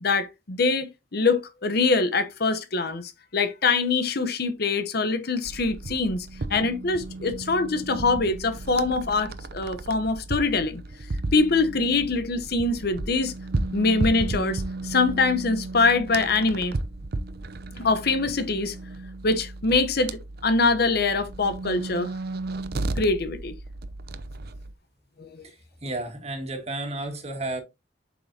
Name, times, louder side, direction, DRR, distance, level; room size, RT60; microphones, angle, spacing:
voice 1, 0.0-10.8 11.3-13.3 13.7-16.7 17.8-18.7 19.2-22.1 23.0-23.5 25.2-25.3, left 3 dB, 55° left, 0.9 m, -24 dB
sound 1, 5.4-24.7, right 2 dB, 55° right, 0.7 m, -34 dB
voice 2, 25.8-27.6, right 2 dB, 35° right, 1.9 m, -32 dB
7.6 x 5.7 x 2.8 m
head